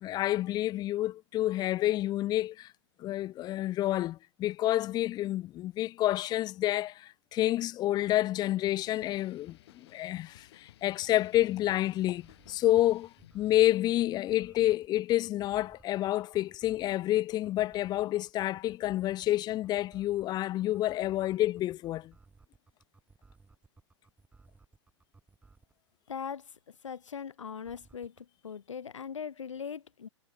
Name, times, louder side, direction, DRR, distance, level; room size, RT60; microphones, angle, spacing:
voice 1, 0.0-2.7 3.0-13.1 13.3-22.1, left 14 dB, 25° left, 0.6 m, -29 dB
sound 1, 8.7-13.7, left 14 dB, 55° left, 6.7 m, -57 dB
sound 2, 11.4-25.8 27.6-28.2, right 3 dB, 10° right, 4.1 m, -60 dB
voice 2, 26.1-26.4 26.8-28.1 28.4-30.1, left 7 dB, 75° left, 2.0 m, -40 dB
figure-of-eight pair, 105°, 16 cm